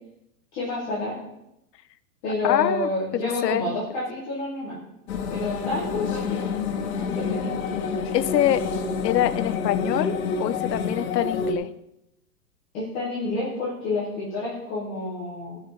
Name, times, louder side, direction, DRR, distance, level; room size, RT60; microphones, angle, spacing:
voice 1, 0.5-1.2 2.2-4.8 5.3-6.5 6.9-7.6 12.7-15.6, left 2 dB, 5° left, -8 dB, 0.4 m, -29 dB
voice 2, 2.4-3.8 8.1-8.7 9.0-11.7, left 12 dB, 85° left, 14 dB, 0.8 m, -25 dB
sound 1, 5.1-11.5, left 5 dB, 60° left, 1.6 m, -28 dB
15.0 x 5.6 x 5.2 m, 0.84 s
supercardioid pair, 165°, 48 cm